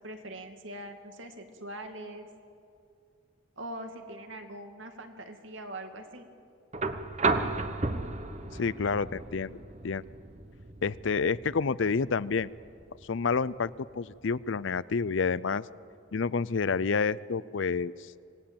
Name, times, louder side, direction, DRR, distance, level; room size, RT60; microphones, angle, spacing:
voice 1, 0.0-2.3 3.6-6.3, right 1 dB, 70° right, 5 dB, 2.3 m, -42 dB
sound 1, 6.7-14.8 16.2-16.3, right 3 dB, 35° right, 1.1 m, -35 dB
voice 2, 8.5-9.6 9.8-10.0 10.8-12.5 13.0-15.6 16.1-18.1, left 5 dB, 65° left, 18 dB, 0.5 m, -29 dB
26.0 x 19.0 x 8.8 m, 2.4 s
head